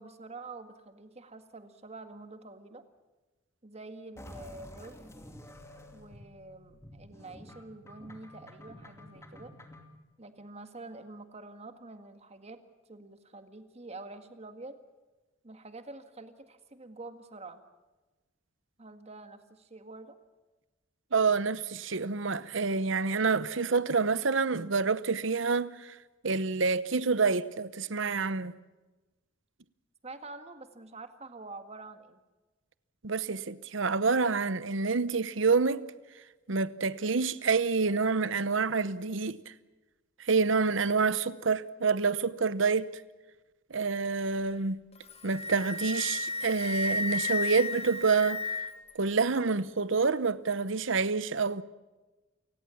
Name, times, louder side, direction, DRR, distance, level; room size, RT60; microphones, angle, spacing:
voice 1, 0.0-2.8 3.6-5.0 5.9-9.5 10.2-12.6 12.9-14.8 15.4-17.6 18.8-20.2 30.0-32.2, right 3 dB, 35° right, 1.8 m, -47 dB
sound 1, 4.2-10.0, left 1 dB, 15° left, 2.6 m, -50 dB
voice 2, 21.1-25.9 26.2-28.5 33.0-35.8 36.5-39.4 40.2-42.9 43.7-44.8 45.2-48.4 48.9-51.6, right 4 dB, 70° right, 0.9 m, -27 dB
Wind instrument woodwind instrument, 45.0-48.9, left 3 dB, 30° left, 1.7 m, -33 dB
29.0 x 17.0 x 7.2 m
head